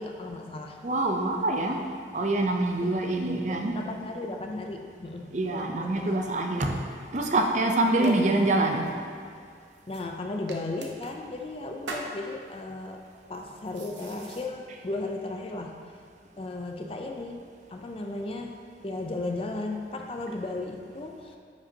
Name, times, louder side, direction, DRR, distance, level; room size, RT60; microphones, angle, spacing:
voice 1, 0.0-0.8 2.8-3.0 3.3-3.4 3.8-6.2 8.0-8.3 9.9-13.0 13.3-15.8 16.4-21.4, left 2 dB, 30° left, 3 dB, 0.4 m, -35 dB
voice 2, 0.8-1.8 2.1-3.8 5.3-6.8 7.1-8.9, right 2 dB, 40° right, 3 dB, 0.5 m, -25 dB
sound 1, 6.9-14.4, right 2 dB, 85° right, 0.8 m, -46 dB
9.6 x 5.1 x 2.8 m, 2.2 s
head